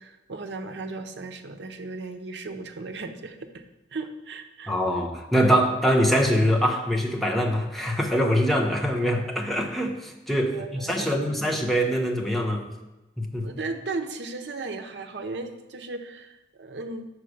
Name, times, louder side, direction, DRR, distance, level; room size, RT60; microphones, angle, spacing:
voice 1, 0.0-3.6 3.9-4.7 10.5-11.5 13.4-17.1, right 3 dB, 75° right, 6 dB, 0.7 m, -36 dB
voice 2, 4.7-12.7 13.2-13.6, equal, ahead, 0 dB, 0.7 m, -24 dB
5.6 x 4.7 x 6.4 m, 1.0 s
head